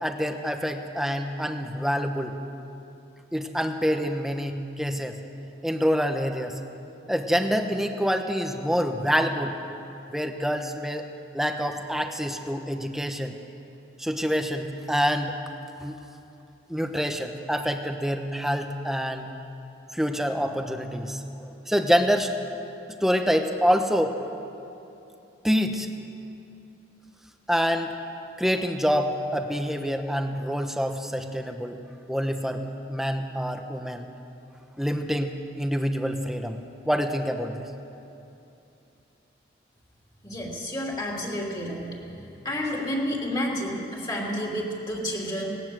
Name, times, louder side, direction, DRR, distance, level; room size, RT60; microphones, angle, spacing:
voice 1, 0.0-2.4 3.3-5.2 5.6-6.5 7.1-9.6 10.1-11.1 11.3-13.3 14.0-15.3 15.8-16.0 16.7-19.3 19.9-22.3 23.0-24.2 25.4-25.9 27.5-27.9 28.4-31.8 32.1-34.1 34.8-36.6 36.8-37.6, equal, ahead, 5 dB, 1.0 m, -26 dB
voice 2, 40.2-42.0 42.4-45.6, equal, 20° left, -2 dB, 3.1 m, -30 dB
18.5 x 18.5 x 7.8 m, 2.8 s
head